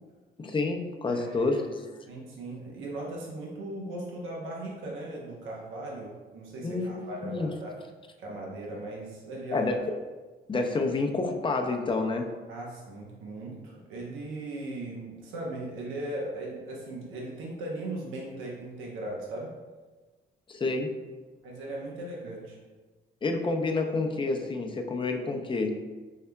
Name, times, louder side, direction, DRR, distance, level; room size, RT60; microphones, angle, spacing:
voice 1, 0.4-1.6 1.9-2.0 6.6-7.5 9.5-9.8 10.5-12.3 20.5-20.9 23.2-25.7, left 3 dB, 25° left, 3 dB, 0.5 m, -29 dB
voice 2, 1.1-1.6 2.1-7.7 8.2-9.6 12.5-19.5 21.4-22.6, right 2 dB, 90° right, -3 dB, 0.8 m, -38 dB
5.6 x 3.4 x 2.2 m, 1.3 s
cardioid pair, 90°, 20 cm